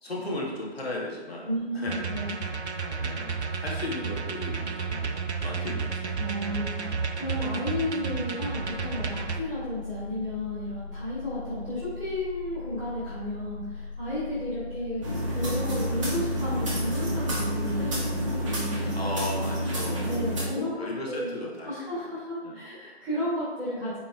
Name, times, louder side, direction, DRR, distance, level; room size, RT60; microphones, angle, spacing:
voice 1, 0.0-1.5 1.7-2.0 3.0-5.1 5.4-6.6 18.9-22.0 22.4-22.6, left 2 dB, 65° left, -3 dB, 2.0 m, -36 dB
voice 2, 1.4-2.3 6.2-15.0 15.3-19.0 20.0-20.8 21.1-21.3 21.6-24.0, left 1 dB, 5° right, -15 dB, 1.3 m, -33 dB
sound 1, 1.9-9.4, right 5 dB, 75° right, 0.8 m, -32 dB
sound 2, 8.6-18.6, left 4 dB, 55° right, 1.0 m, -40 dB
sound 3, 15.0-20.4, equal, 30° right, 1.4 m, -29 dB
8.6 x 4.2 x 3.4 m, 1.3 s
figure-of-eight pair, 165°, 34 cm